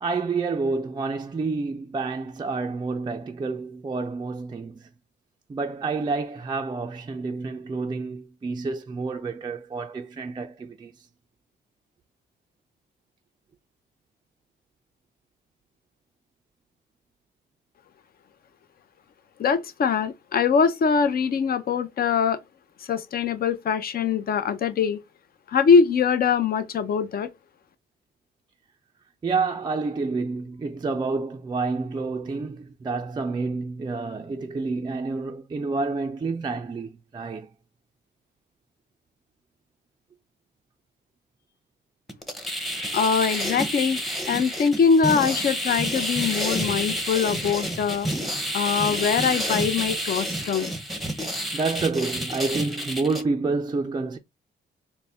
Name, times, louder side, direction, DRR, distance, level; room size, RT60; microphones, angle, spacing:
voice 1, 0.0-4.9 5.5-10.9 29.2-37.5 51.2-54.2, right 4 dB, 20° right, 0.4 m, -29 dB
voice 2, 19.4-22.4 22.8-25.0 25.5-27.3 42.9-44.0 44.2-48.1 48.5-50.7, left 6 dB, 50° left, 0.6 m, -22 dB
sound 1, 42.1-53.2, equal, ahead, 0.8 m, -29 dB
4.0 x 2.1 x 3.4 m
cardioid pair, 90°, 20 cm